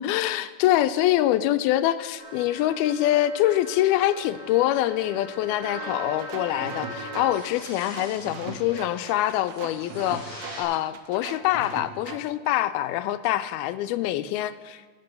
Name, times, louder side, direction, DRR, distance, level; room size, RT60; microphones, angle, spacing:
voice 1, 0.0-14.8, left 13 dB, 85° left, 2.5 m, -25 dB
sound 1, 2.2-10.6, equal, 20° right, 6.3 m, -40 dB
sound 2, 6.2-12.2, right 5 dB, 90° right, 1.3 m, -40 dB
17.5 x 9.7 x 6.8 m
omnidirectional pair, 4.4 m